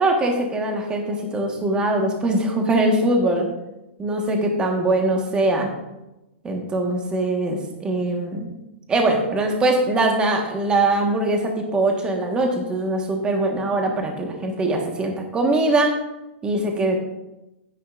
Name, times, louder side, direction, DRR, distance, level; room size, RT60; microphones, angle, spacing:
voice 1, 0.0-3.5 4.0-5.7 6.4-8.5 8.9-15.9 16.4-17.0, right 2 dB, 15° right, 2 dB, 1.4 m, -22 dB
14.0 x 9.7 x 2.5 m, 0.96 s
hypercardioid pair, 155°, 7 cm